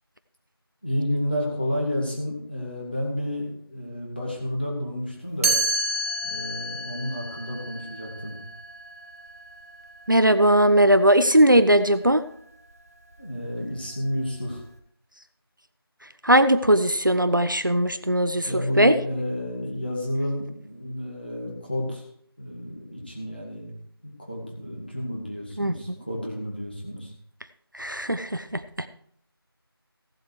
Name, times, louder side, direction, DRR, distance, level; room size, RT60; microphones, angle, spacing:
voice 1, 0.8-5.6 6.2-8.4 13.2-14.6 18.4-22.1 22.4-23.7 24.0-27.1, equal, 25° left, -3 dB, 2.5 m, -30 dB
Chime, 5.4-11.3, right 2 dB, 35° right, 2.2 m, -31 dB
voice 2, 10.1-12.2 16.2-19.0 25.6-25.9 27.7-28.9, right 1 dB, 55° right, 11 dB, 0.7 m, -19 dB
16.0 x 7.8 x 4.7 m, 0.66 s
figure-of-eight pair, 180°, 13 cm